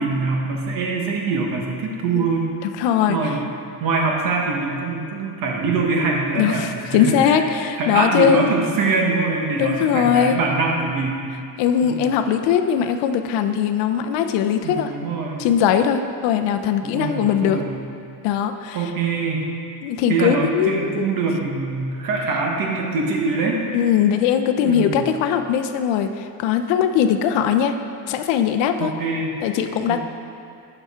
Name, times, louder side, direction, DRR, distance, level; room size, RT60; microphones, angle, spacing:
voice 1, 0.0-2.5 3.1-3.4 3.8-7.4 7.8-11.2 11.8-12.1 14.6-15.5 16.8-17.8 18.7-19.5 20.1-23.6 24.6-25.1 28.8-29.4 29.9-30.0, right 4 dB, 45° right, 0 dB, 1.1 m, -23 dB
voice 2, 2.8-3.2 6.3-8.5 9.5-10.4 11.6-14.9 15.4-17.6 18.2-18.9 19.8-21.1 23.7-27.8 28.1-28.9 29.4-30.0, left 8 dB, 70° left, 8 dB, 0.6 m, -20 dB
9.8 x 5.9 x 3.6 m, 2.5 s
cardioid pair, 165°, 46 cm